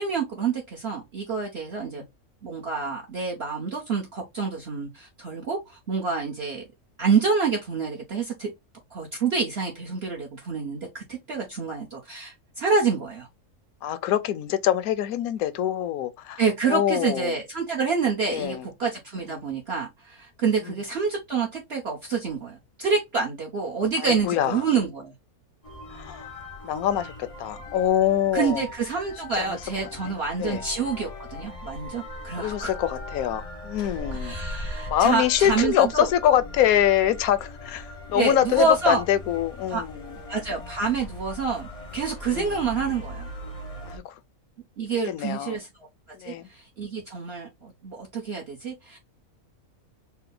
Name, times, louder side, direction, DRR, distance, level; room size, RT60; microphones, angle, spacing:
voice 1, 0.0-2.0 2.4-6.6 7.0-8.5 8.9-13.3 16.4-25.1 28.3-32.7 34.1-36.1 38.1-39.0 39.7-39.8 40.3-43.3 44.8-45.7 46.2-49.0, right 5 dB, 50° right, 0.9 m, -27 dB
voice 2, 13.8-17.4 18.3-18.7 19.3-19.4 20.6-20.7 24.0-24.7 25.9-26.3 26.6-28.6 29.4-29.6 30.0-30.6 32.4-34.4 34.9-40.2 42.3-42.6 43.9-44.1 45.1-45.6 46.1-46.5, left 11 dB, 80° left, 1.0 m, -25 dB
sound 1, 25.6-44.0, left 1 dB, 35° left, 0.6 m, -39 dB
4.3 x 2.1 x 3.8 m
omnidirectional pair, 1.6 m